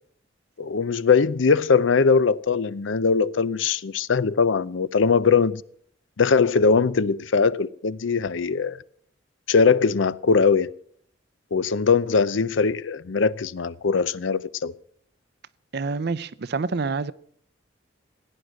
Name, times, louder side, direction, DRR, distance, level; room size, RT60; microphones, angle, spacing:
voice 1, 0.6-5.6 6.2-8.8 9.5-10.7 11.5-14.7, left 5 dB, 75° left, 0.6 m, -21 dB
voice 2, 15.7-17.1, right 4 dB, 55° right, 0.6 m, -27 dB
16.5 x 9.7 x 7.6 m
head